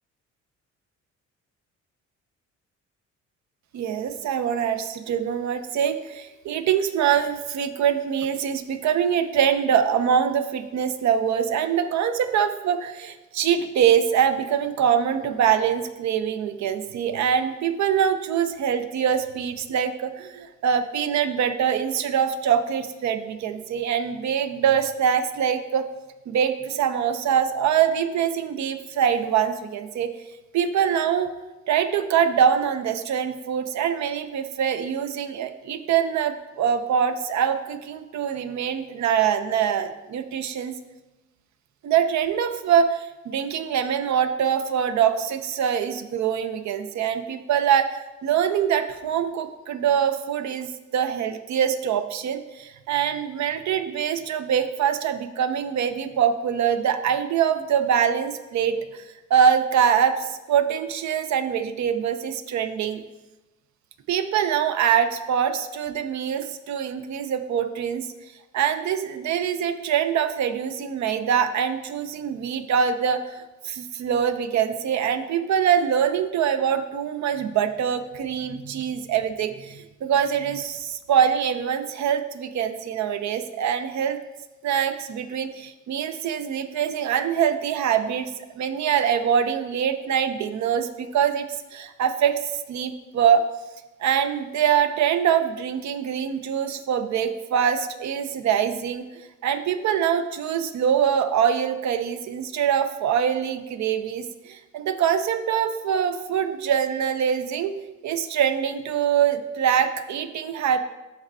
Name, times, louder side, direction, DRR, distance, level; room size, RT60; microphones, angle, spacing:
voice 1, 3.7-25.9 26.3-30.2 30.5-31.3 31.7-40.7 41.8-59.0 59.3-63.0 64.1-68.1 68.5-84.2 84.6-88.3 88.6-92.3 92.7-93.5 94.0-107.8 108.0-110.8, right 8 dB, 65° right, 8 dB, 0.6 m, -24 dB
12.0 x 4.2 x 2.7 m, 1.1 s
cardioid pair, 90°, 30 cm